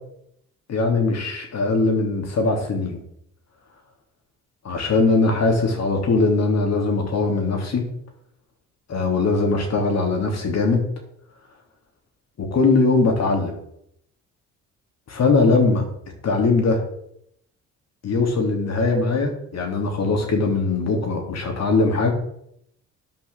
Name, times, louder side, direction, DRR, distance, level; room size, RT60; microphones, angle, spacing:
voice 1, 0.7-3.0 4.6-7.8 8.9-10.8 12.4-13.6 15.1-15.8 16.2-16.8 18.0-22.1, left 3 dB, 60° left, 3 dB, 3.2 m, -20 dB
10.5 x 5.8 x 7.1 m, 0.74 s
cardioid pair, 90°, 30 cm